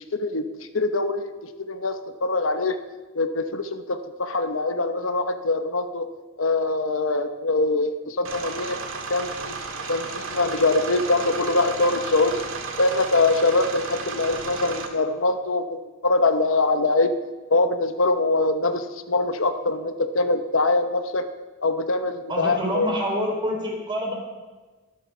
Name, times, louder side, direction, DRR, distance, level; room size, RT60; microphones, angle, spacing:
voice 1, 0.1-1.3 1.7-2.8 3.1-6.1 6.4-8.8 9.1-9.5 9.9-12.4 12.8-17.1 17.5-21.3 21.6-22.9, left 2 dB, 70° left, 8 dB, 1.0 m, -23 dB
sound 1, 8.2-14.9, right 4 dB, 75° right, 1.8 m, -33 dB
voice 2, 22.3-24.1, equal, 25° right, 1 dB, 3.5 m, -27 dB
23.0 x 7.8 x 6.0 m, 1.3 s
head